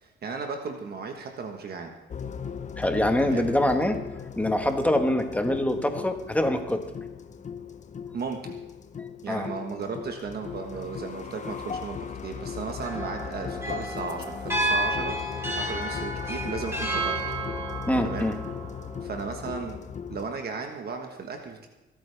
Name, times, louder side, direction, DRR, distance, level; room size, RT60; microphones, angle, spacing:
voice 1, 0.0-1.9 3.2-3.5 8.1-8.6 9.2-17.2 18.0-18.3 19.0-19.8 20.1-21.7, right 5 dB, 50° right, 3 dB, 1.4 m, -35 dB
sound 1, 2.1-20.3, left 7 dB, 35° left, 0.7 m, -37 dB
voice 2, 2.8-4.0 4.4-6.9 9.3-9.5 17.9-18.4, left 1 dB, 5° left, 5 dB, 1.5 m, -24 dB
sound 2, 12.8-19.1, right 1 dB, 10° right, 3.5 m, -31 dB
26.0 x 8.6 x 3.4 m, 1.1 s
cardioid pair, 90°, 20 cm